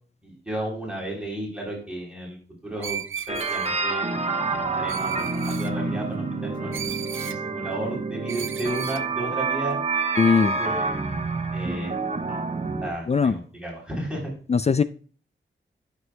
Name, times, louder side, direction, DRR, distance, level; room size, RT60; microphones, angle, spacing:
voice 1, 0.2-2.4 2.6-3.0 3.3-4.2 4.5-9.8 10.2-11.0 11.5-12.0 12.3-12.4 12.8-14.3, right 1 dB, 5° right, -3 dB, 3.5 m, -33 dB
Screech, 2.8-3.8 4.9-5.7 6.7-7.4 8.3-9.0, right 8 dB, 85° right, 0.5 m, -35 dB
sound 1, 3.3-12.9, right 3 dB, 35° right, 1.0 m, -28 dB
voice 2, 10.2-10.6 13.1-13.4 14.5-14.8, left 5 dB, 35° left, 13 dB, 0.4 m, -20 dB
12.0 x 6.2 x 2.2 m, 0.41 s
wide cardioid pair, 80°, 20 cm